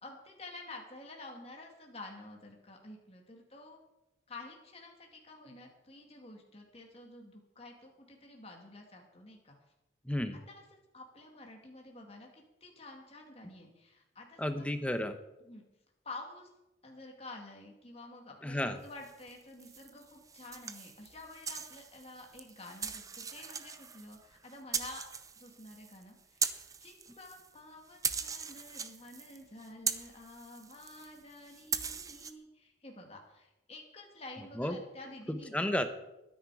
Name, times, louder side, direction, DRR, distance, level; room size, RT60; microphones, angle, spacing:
voice 1, 0.0-3.8 4.3-9.6 10.5-14.6 15.4-15.6 16.0-16.5 16.8-25.0 25.4-26.6 26.8-35.5, left 2 dB, 30° left, 1 dB, 2.3 m, -50 dB
voice 2, 10.0-10.4 14.4-15.2 18.4-18.8 34.6-34.8 35.3-35.9, left 1 dB, 5° left, 8 dB, 1.1 m, -32 dB
sound 1, 19.0-27.6 27.9-32.3, right 6 dB, 20° right, 0.7 m, -40 dB
21.5 x 10.5 x 4.9 m, 0.96 s
head